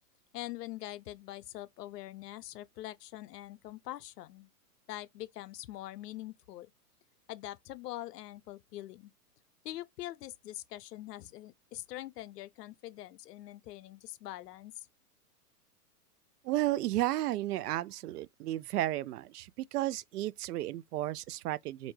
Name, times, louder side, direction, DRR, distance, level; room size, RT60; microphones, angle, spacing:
voice 1, 0.3-4.5 4.9-6.7 7.3-9.1 9.6-14.9, left 15 dB, 80° left, 0.6 m, -44 dB
voice 2, 16.4-21.9, right 15 dB, 75° right, 0.5 m, -33 dB
4.4 x 2.6 x 3.1 m
hypercardioid pair, 125°, 47 cm